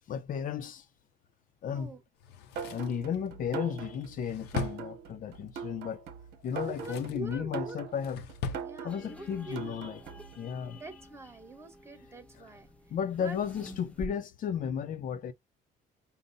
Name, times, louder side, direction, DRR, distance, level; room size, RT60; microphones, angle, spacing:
voice 1, 0.1-0.9 1.6-1.9 2.7-6.1 6.4-8.2 8.8-10.8 12.9-15.3, left 8 dB, 55° left, 0.6 m, -34 dB
Drawer open or close, 2.2-5.5 6.4-7.3 7.7-8.7 9.0-9.1, left 5 dB, 90° left, 0.8 m, -40 dB
sound 1, 2.6-10.4, right 7 dB, 80° right, 1.0 m, -41 dB
voice 2, 6.7-7.8 8.6-9.9 10.7-12.7 13.2-13.4, right 2 dB, 15° right, 1.1 m, -44 dB
sound 2, 8.9-14.1, left 1 dB, 5° left, 0.5 m, -49 dB
5.4 x 2.1 x 3.9 m
cardioid pair, 110°, 17 cm